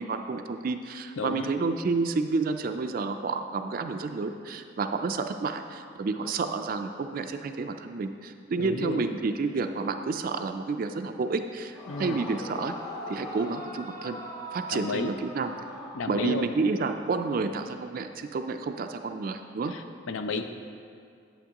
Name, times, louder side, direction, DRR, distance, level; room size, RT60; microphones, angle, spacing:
voice 1, 0.0-12.7 13.1-14.2 14.5-15.5 16.1-19.7, right 4 dB, 45° right, 7 dB, 0.3 m, -30 dB
voice 2, 1.2-1.5 8.6-9.1 11.9-12.2 14.7-15.1 15.9-16.5 19.7-20.4, left 3 dB, 85° left, 8 dB, 0.5 m, -32 dB
Yell / Screaming, 11.7-16.6, equal, 20° left, 0.6 m, -40 dB
9.3 x 8.4 x 2.9 m, 2.3 s
head